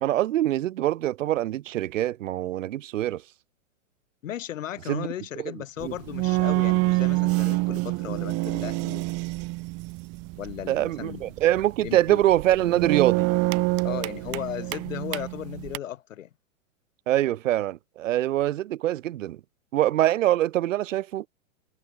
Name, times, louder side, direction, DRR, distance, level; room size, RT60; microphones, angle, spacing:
voice 1, 0.0-3.2 4.9-5.1 5.4-5.5 5.8-5.9 10.7-13.3 17.1-19.4 19.7-21.2, right 13 dB, 70° right, 1.1 m, -24 dB
voice 2, 4.2-9.1 10.4-11.3 11.8-12.2 13.8-16.3, left 11 dB, 70° left, 7.5 m, -36 dB
sound 1, 5.8-15.8, right 24 dB, 35° right, 2.2 m, -27 dB
hypercardioid pair, 125°, 40 cm